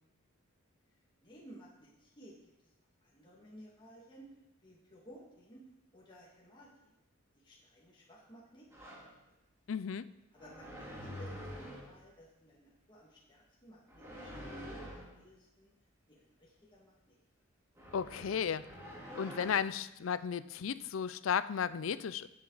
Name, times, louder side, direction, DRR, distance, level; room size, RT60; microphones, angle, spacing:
voice 1, 1.2-2.7 3.0-4.3 4.6-5.6 5.9-7.0 7.3-9.0 9.3-9.4 10.3-15.7 16.1-17.2, equal, 20° left, -4 dB, 2.0 m, -56 dB
sound 1, 8.7-9.1 10.4-12.0 13.9-15.1 17.8-19.6, equal, 15° right, 2.3 m, -46 dB
voice 2, 9.7-10.1 17.9-18.7 19.2-22.3, left 7 dB, 70° left, 16 dB, 0.4 m, -34 dB
14.5 x 7.5 x 4.0 m, 0.91 s
head